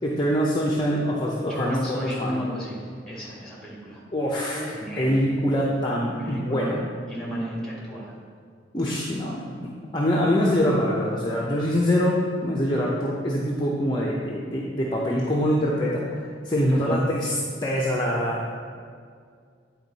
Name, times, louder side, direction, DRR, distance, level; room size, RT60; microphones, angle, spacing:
voice 1, 0.0-2.5 4.1-4.6 5.0-6.8 8.7-18.5, equal, 25° left, -4 dB, 0.6 m, -24 dB
voice 2, 1.4-4.0 4.5-5.2 6.2-6.8 7.1-8.1 8.8-9.1 10.6-10.7 16.7-17.0, equal, 5° left, -5 dB, 1.7 m, -33 dB
9.1 x 4.5 x 4.0 m, 2.1 s
head